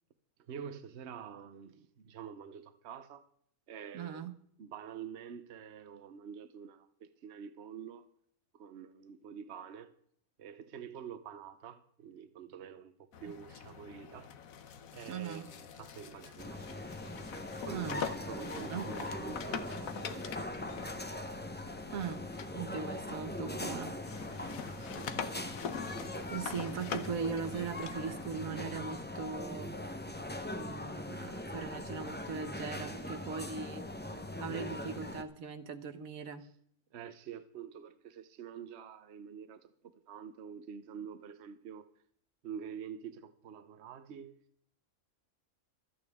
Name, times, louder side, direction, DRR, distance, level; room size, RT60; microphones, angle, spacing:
voice 1, 0.4-3.2 3.7-4.3 4.6-8.1 8.5-9.9 10.4-14.3 14.9-16.6 17.5-20.7 24.8-25.4 36.9-41.9 42.4-44.4, right 7 dB, 55° right, 1.1 m, -47 dB
voice 2, 3.9-4.3 15.1-15.5 17.7-18.0 18.7-18.8 21.9-22.3 22.5-23.9 26.3-29.9 30.5-33.9 34.4-36.4, right 6 dB, 85° right, 1.5 m, -39 dB
sound 1, 13.1-23.7 24.0-28.4, left 7 dB, 85° left, 1.4 m, -44 dB
sound 2, 16.4-35.2, left 1 dB, 10° left, 0.7 m, -41 dB
25.0 x 8.9 x 3.6 m
omnidirectional pair, 1.4 m